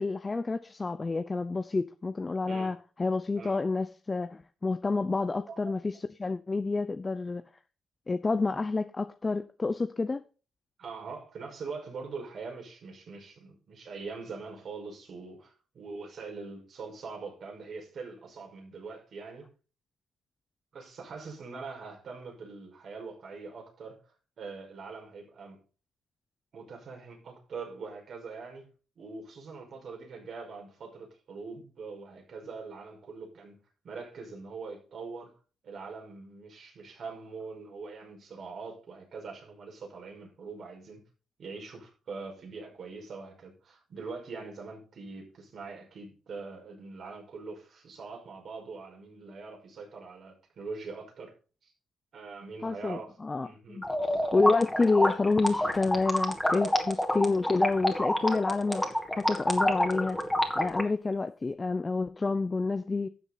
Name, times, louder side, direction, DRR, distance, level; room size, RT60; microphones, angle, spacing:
voice 1, 0.0-7.4 8.1-10.2 52.6-53.8 54.3-60.2 60.6-63.1, left 3 dB, 25° left, 0.7 m, -29 dB
voice 2, 5.3-5.7 10.8-19.5 20.7-24.0 24.4-25.6 26.5-28.7 29.0-33.6 33.8-35.3 35.6-41.0 41.4-51.3 51.6-51.7 52.1-53.1 53.4-54.2, right 4 dB, 55° right, 5.5 m, -43 dB
sound 1, 53.8-60.8, left 1 dB, 5° left, 2.5 m, -28 dB
12.5 x 7.2 x 4.1 m
cardioid pair, 90°, 0 cm